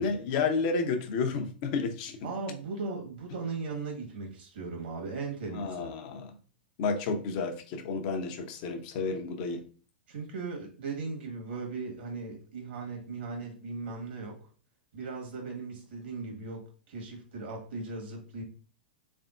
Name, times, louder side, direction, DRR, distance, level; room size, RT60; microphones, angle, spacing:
voice 1, 0.0-2.2 5.5-6.3 6.8-9.6, left 4 dB, 50° left, 0.7 m, -31 dB
voice 2, 2.2-5.9 10.1-14.4 14.9-18.4, right 4 dB, 70° right, 1.5 m, -38 dB
3.5 x 3.5 x 2.5 m
hypercardioid pair, 110°, 6 cm